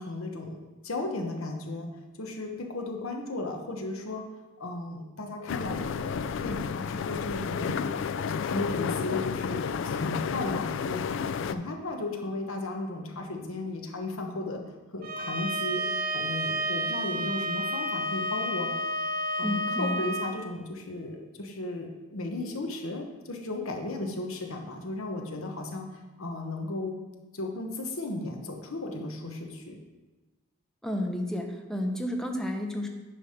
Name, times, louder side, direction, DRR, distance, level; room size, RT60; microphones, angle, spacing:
voice 1, 0.0-1.9 2.2-4.2 4.6-7.8 8.5-11.0 11.3-14.6 14.9-15.8 16.1-18.7 19.4-27.0 27.3-29.8, left 2 dB, 85° left, 2 dB, 1.1 m, -35 dB
sound 1, 5.5-11.5, left 6 dB, 65° left, 0.3 m, -31 dB
Bowed string instrument, 15.0-20.3, right 1 dB, 45° right, 0.6 m, -30 dB
voice 2, 19.4-20.1 30.8-32.9, left 1 dB, ahead, 2 dB, 0.7 m, -31 dB
9.8 x 3.4 x 5.7 m, 1.1 s
head